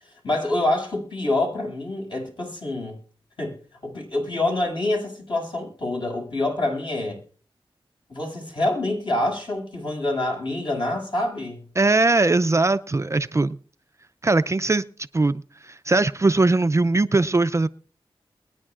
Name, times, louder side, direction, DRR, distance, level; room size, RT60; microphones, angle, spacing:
voice 1, 0.2-3.0 3.4-3.6 3.8-7.2 8.1-11.6, left 2 dB, 55° left, 6.9 m, -26 dB
voice 2, 11.8-13.6 14.2-14.8 15.1-17.7, right 3 dB, 30° right, 0.4 m, -20 dB
22.0 x 9.7 x 2.4 m
cardioid pair, 60°, 10 cm